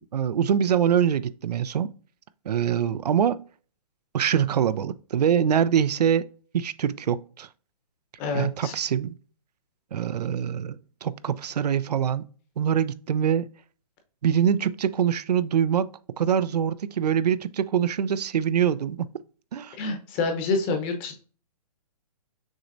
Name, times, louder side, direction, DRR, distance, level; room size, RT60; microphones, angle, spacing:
voice 1, 0.1-1.9 2.5-3.4 4.1-6.3 6.5-7.5 8.3-9.2 9.9-12.3 12.6-13.5 14.2-15.9 16.2-19.1 19.5-19.8, right 8 dB, 85° right, 0.4 m, -24 dB
voice 2, 8.2-8.7 19.8-21.1, left 3 dB, 25° left, 0.8 m, -27 dB
6.2 x 3.1 x 2.5 m
hypercardioid pair, 145°, 20 cm